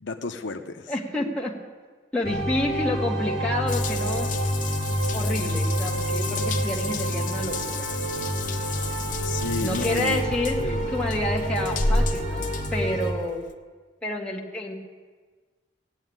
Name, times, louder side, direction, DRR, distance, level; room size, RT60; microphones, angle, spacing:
voice 1, 0.0-0.9 9.2-10.2 10.6-10.9, left 3 dB, 70° left, 5 dB, 0.8 m, -32 dB
voice 2, 0.9-1.5 2.1-4.3 5.1-7.9 9.6-13.4 14.0-14.7, left 1 dB, 5° left, -3 dB, 1.9 m, -29 dB
sound 1, 2.2-13.1, right 1 dB, 55° right, 2.7 m, -28 dB
Water tap faucet / Bathtub (filling or washing) / Drip, 3.7-13.5, left 3 dB, 40° left, 1.0 m, -32 dB
18.0 x 8.1 x 9.3 m, 1.4 s
head